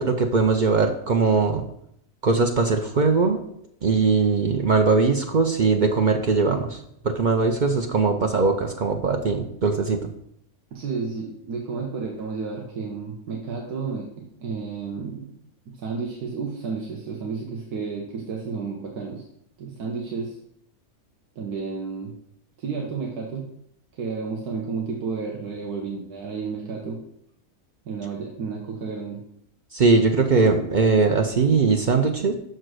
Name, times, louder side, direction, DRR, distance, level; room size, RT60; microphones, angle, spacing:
voice 1, 0.0-1.6 2.2-3.4 3.8-10.0 29.7-32.3, right 4 dB, 60° right, 4 dB, 0.4 m, -20 dB
voice 2, 10.7-15.4 15.8-19.3 19.6-20.4 21.4-22.1 22.6-23.5 23.9-27.0 27.8-29.2, right 5 dB, 90° right, 0 dB, 1.6 m, -31 dB
6.2 x 4.5 x 6.3 m, 0.72 s
omnidirectional pair, 1.6 m